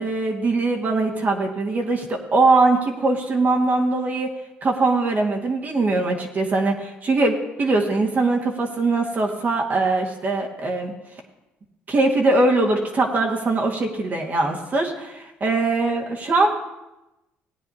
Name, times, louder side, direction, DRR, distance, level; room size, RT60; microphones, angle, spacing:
voice 1, 0.0-4.3 4.6-10.9 11.9-16.5, right 3 dB, 40° right, 0 dB, 1.7 m, -21 dB
18.5 x 9.0 x 2.8 m, 0.95 s
supercardioid pair, 85°, 5 cm